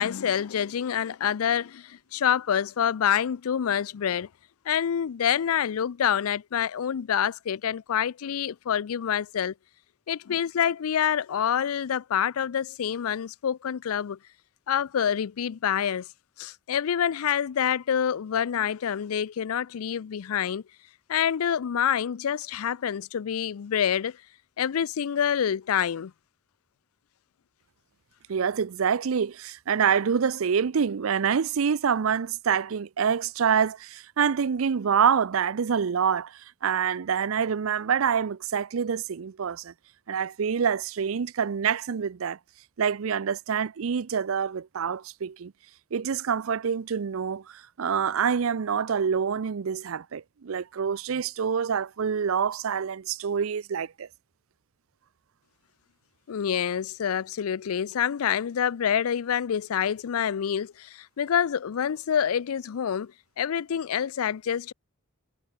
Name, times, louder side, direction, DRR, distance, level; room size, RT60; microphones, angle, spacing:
voice 1, 0.0-4.3 4.7-9.5 10.1-14.2 14.7-16.1 16.4-20.6 21.1-24.2 24.6-26.1 56.3-63.1 63.4-64.7, left 8 dB, 85° left, 0.4 m, -27 dB
voice 2, 28.3-39.7 40.1-42.4 42.8-45.5 45.9-54.1, right 7 dB, 75° right, 0.5 m, -26 dB
head